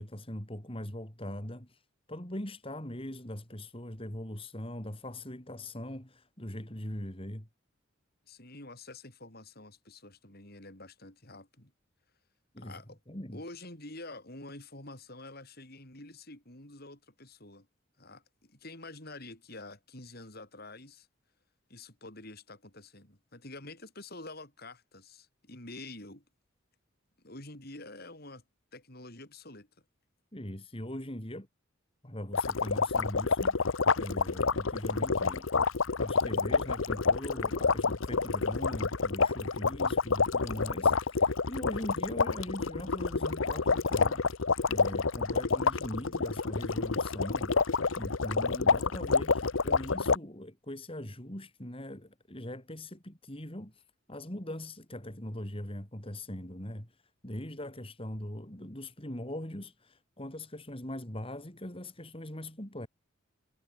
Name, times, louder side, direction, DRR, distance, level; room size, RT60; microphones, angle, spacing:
voice 1, 0.0-1.8 2.1-7.5 12.5-12.8 13.1-13.4 30.3-31.5 32.0-35.5 36.0-44.2 44.7-47.5 48.0-62.9, left 1 dB, 30° left, 4.0 m, -41 dB
voice 2, 8.3-11.7 12.6-13.0 13.3-17.7 18.0-21.1 21.7-26.2 27.2-28.4 28.7-29.7, left 2 dB, 50° left, 7.5 m, -47 dB
sound 1, 32.3-50.2, left 4 dB, 80° left, 1.0 m, -28 dB
head